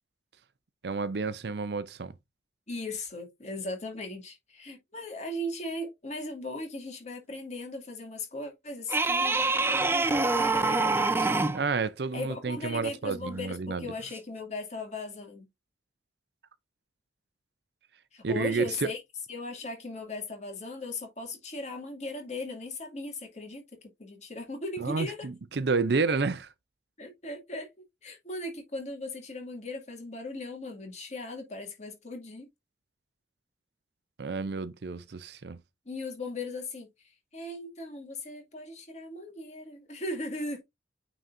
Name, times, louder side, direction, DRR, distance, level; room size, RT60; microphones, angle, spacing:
voice 1, 0.8-2.1 11.5-13.9 18.2-18.9 24.8-26.5 34.2-35.6, right 4 dB, 60° right, 0.6 m, -30 dB
voice 2, 2.7-10.9 12.1-15.5 18.1-19.0 19.3-25.3 27.0-27.7 28.0-32.5 35.9-36.9 37.3-40.6, left 2 dB, 40° left, 2.4 m, -38 dB
sound 1, 8.9-11.6 14.1-14.2, right 3 dB, 15° right, 0.6 m, -25 dB
9.1 x 4.0 x 2.6 m
head